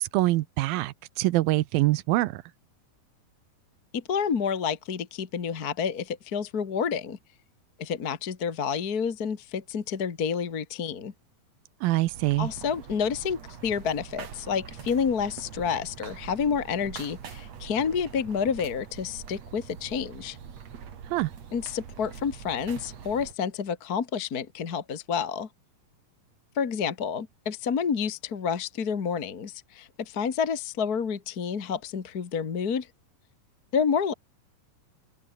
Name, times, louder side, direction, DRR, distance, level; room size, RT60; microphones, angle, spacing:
voice 1, 0.0-2.4 11.8-12.5 21.1-21.3, right 17 dB, 85° right, 2.6 m, -25 dB
voice 2, 3.9-7.2 7.8-11.1 12.4-20.4 21.5-25.5 26.5-32.9 33.7-34.1, left 6 dB, 40° left, 1.3 m, -29 dB
sound 1, 12.1-23.3, right 7 dB, 50° right, 3.4 m, -43 dB
open air
omnidirectional pair, 4.2 m